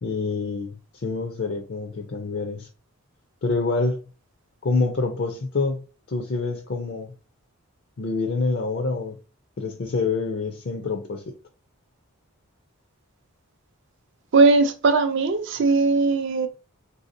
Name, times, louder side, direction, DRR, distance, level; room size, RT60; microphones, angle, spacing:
voice 1, 0.0-2.7 3.4-4.0 4.6-7.1 8.0-9.2 9.6-11.3, left 3 dB, 50° left, 0.4 m, -26 dB
voice 2, 14.3-16.5, right 3 dB, 55° right, 0.4 m, -19 dB
3.5 x 2.7 x 2.6 m
head